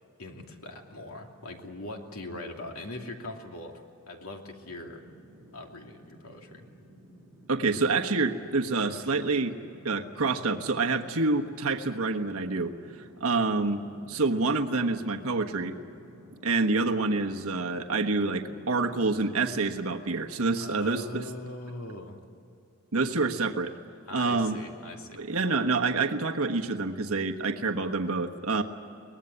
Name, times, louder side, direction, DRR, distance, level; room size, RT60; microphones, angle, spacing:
voice 1, 0.2-5.0 5.5-6.7 20.6-22.2 24.1-25.3, left 2 dB, 75° left, 2 dB, 2.8 m, -41 dB
sound 1, 4.6-19.4, right 1 dB, 5° right, 7.3 m, -52 dB
voice 2, 7.5-9.5 9.8-13.8 14.1-15.8 16.4-21.3 22.9-23.7 24.1-24.6 25.1-28.6, right 3 dB, 75° right, 4 dB, 1.3 m, -27 dB
23.5 x 19.5 x 9.9 m, 2.5 s
head